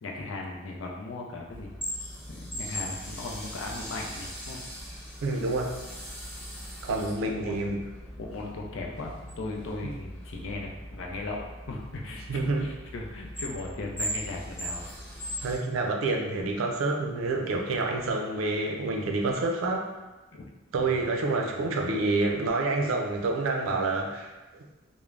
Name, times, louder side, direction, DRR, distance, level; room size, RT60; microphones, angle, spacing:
voice 1, 0.0-1.7 2.3-4.6 6.9-7.7 8.2-11.4 11.7-14.9 20.3-20.4 20.8-21.0 21.5-21.6, left 2 dB, 70° left, -1 dB, 0.5 m, -38 dB
sound 1, 1.5-15.6, equal, 10° left, 0.8 m, -39 dB
voice 2, 5.2-5.7 6.8-7.8 12.3-12.7 15.4-19.9 20.7-24.3, right 2 dB, 85° right, 1 dB, 0.4 m, -28 dB
2.4 x 2.0 x 3.2 m, 1.1 s
head